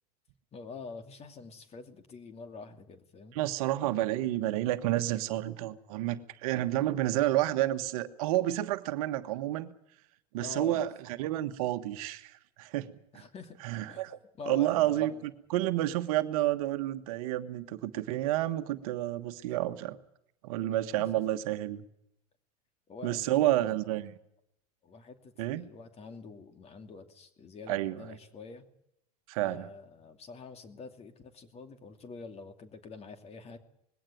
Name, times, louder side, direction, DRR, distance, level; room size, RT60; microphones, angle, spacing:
voice 1, 0.5-3.4 10.4-10.9 13.1-13.6 13.9-14.0 14.4-15.3 21.1-21.2 22.9-23.8 24.8-28.6 29.4-33.6, left 4 dB, 30° left, 8 dB, 2.7 m, -46 dB
voice 2, 3.3-9.7 10.3-13.2 13.6-14.2 14.5-20.0 20.4-21.8 23.0-24.1 25.4-25.6 27.7-28.0 29.3-29.7, right 14 dB, 60° right, 10 dB, 1.4 m, -30 dB
20.0 x 17.0 x 9.2 m, 0.78 s
hypercardioid pair, 85°, 20 cm